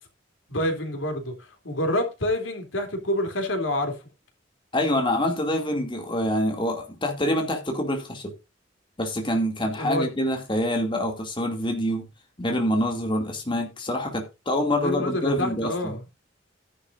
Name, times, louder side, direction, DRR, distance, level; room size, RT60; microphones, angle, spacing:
voice 1, 0.5-1.3 1.6-3.9 9.8-10.1 14.8-16.0, left 1 dB, 90° left, 3.3 m, -27 dB
voice 2, 4.7-8.3 9.0-12.1 12.4-16.0, left 1 dB, 25° left, 2.6 m, -26 dB
13.5 x 10.5 x 2.6 m
head